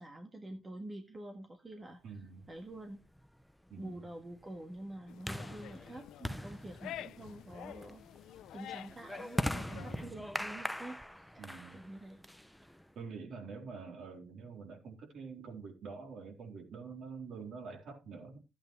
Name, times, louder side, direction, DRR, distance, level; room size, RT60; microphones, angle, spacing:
voice 1, 0.0-2.0 2.5-3.0 3.8-8.0 8.5-12.2, right 1 dB, 20° right, 1.6 m, -47 dB
voice 2, 2.0-2.5 3.7-4.0 9.7-10.2 11.4-11.8 13.0-18.4, right 5 dB, 60° right, 3.7 m, -46 dB
sound 1, 2.6-12.9, equal, ahead, 0.6 m, -42 dB
sound 2, 5.1-10.1, left 12 dB, 75° left, 0.4 m, -49 dB
13.0 x 8.7 x 3.2 m
cardioid pair, 105°, 0 cm